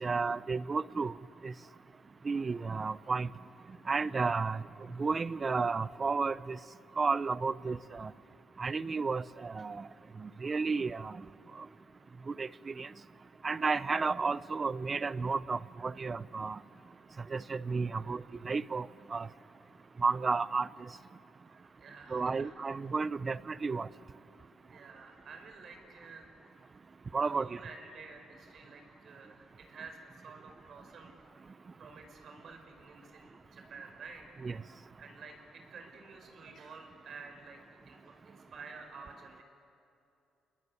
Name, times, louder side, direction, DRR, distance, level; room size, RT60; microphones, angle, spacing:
voice 1, 0.0-1.1 1.4-1.5 2.2-3.3 3.9-4.6 5.0-6.6 7.0-8.1 8.6-9.8 10.2-11.1 12.3-12.9 13.4-16.6 17.3-19.3 20.0-20.7 22.1-23.9 27.1-27.6 34.4-34.6, right 4 dB, 35° right, 18 dB, 0.6 m, -32 dB
voice 2, 17.9-18.3 21.5-22.6 24.7-26.3 27.2-31.1 31.8-34.2 35.0-39.4, right 4 dB, 60° right, 5 dB, 5.2 m, -51 dB
28.5 x 21.0 x 9.7 m, 2.7 s
cardioid pair, 90°, 0 cm